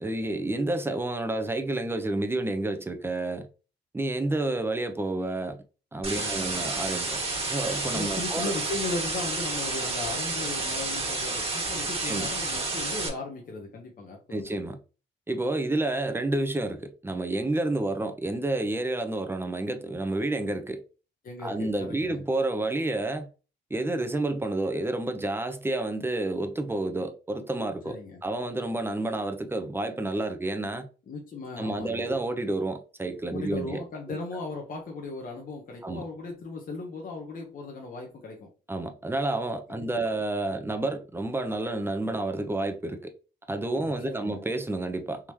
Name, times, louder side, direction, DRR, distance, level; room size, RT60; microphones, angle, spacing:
voice 1, 0.0-3.5 3.9-5.6 5.9-7.2 7.5-8.5 12.0-12.3 14.3-14.8 15.3-20.8 21.4-23.3 23.7-30.9 31.6-33.8 35.8-36.0 38.7-43.1 43.5-45.3, right 2 dB, 10° right, 0.6 m, -30 dB
sound 1, 6.0-13.1, right 3 dB, 30° right, 1.3 m, -30 dB
voice 2, 6.1-6.6 7.8-14.5 21.2-22.2 27.8-28.2 31.1-32.1 33.3-38.5 39.7-39.9 43.8-44.4, left 3 dB, 45° left, 0.9 m, -37 dB
3.6 x 2.9 x 3.1 m
cardioid pair, 90°, 20 cm